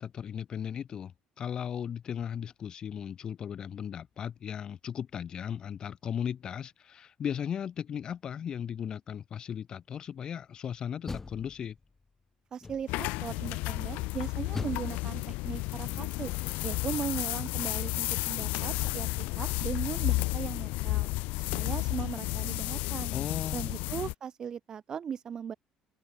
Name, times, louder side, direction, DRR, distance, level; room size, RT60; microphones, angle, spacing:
voice 1, 0.0-11.8 23.1-23.7, left 8 dB, 30° left, 2.4 m, -36 dB
Door, 10.8-12.0 12.6-13.2 14.5-16.4, left 4 dB, 15° left, 1.2 m, -42 dB
voice 2, 12.5-16.3 16.6-21.1 21.5-23.1 23.5-25.5, right 7 dB, 30° right, 2.8 m, -38 dB
sound 1, 12.9-24.1, left 23 dB, 90° left, 0.7 m, -32 dB
cardioid pair, 170°, 2 cm